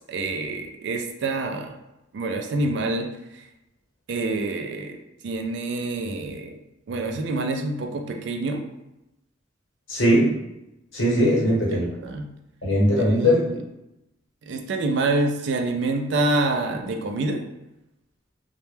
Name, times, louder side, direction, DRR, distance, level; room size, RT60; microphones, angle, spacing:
voice 1, 0.1-1.8 2.1-3.1 3.3-3.4 4.1-5.0 5.2-6.5 6.9-8.6 11.4-12.3 13.0-13.6 14.5-17.4, right 2 dB, 60° right, 4 dB, 0.3 m, -27 dB
voice 2, 9.9-10.3 10.9-11.8 12.6-13.4, equal, 85° left, -5 dB, 0.9 m, -19 dB
2.1 x 2.1 x 3.1 m, 0.91 s
head